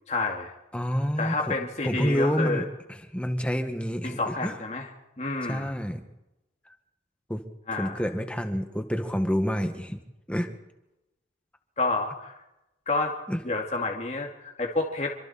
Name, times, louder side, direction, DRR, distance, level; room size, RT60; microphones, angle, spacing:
voice 1, 0.1-0.5 1.2-2.6 4.0-4.9 5.2-5.7 7.7-8.0 11.8-12.3 12.9-13.2 13.4-15.1, left 3 dB, 40° left, 0 dB, 2.3 m, -29 dB
voice 2, 0.7-1.5 1.8-4.6 5.4-6.0 7.3-7.4 7.7-10.0 10.3-10.5 13.3-13.4, equal, 5° left, 6 dB, 1.7 m, -28 dB
27.0 x 25.0 x 4.4 m, 0.94 s
head